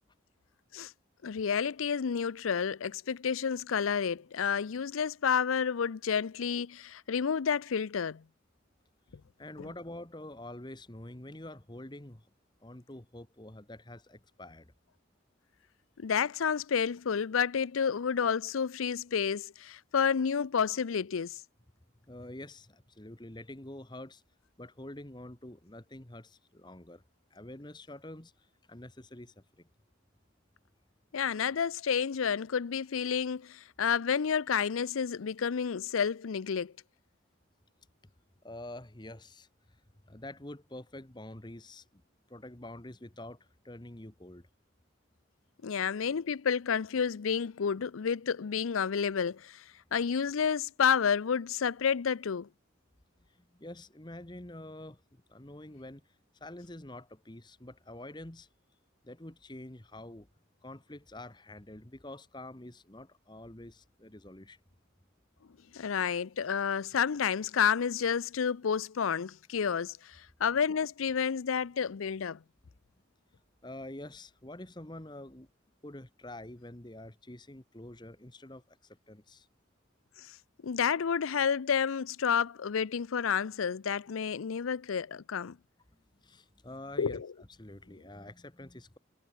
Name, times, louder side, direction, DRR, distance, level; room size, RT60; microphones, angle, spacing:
voice 1, 1.2-8.2 9.6-9.7 16.0-21.4 31.1-36.7 45.6-49.6 49.9-52.5 65.7-72.4 80.2-80.3 80.6-85.6 87.0-87.3, left 7 dB, 90° left, 0.5 m, -30 dB
voice 2, 9.4-12.3 12.6-14.7 22.1-24.2 24.6-27.0 27.3-29.7 38.4-39.8 40.0-42.0 42.3-44.5 53.3-58.5 59.0-60.3 60.6-64.6 73.6-75.5 75.8-79.5 86.2-89.0, left 1 dB, 20° left, 1.3 m, -47 dB
head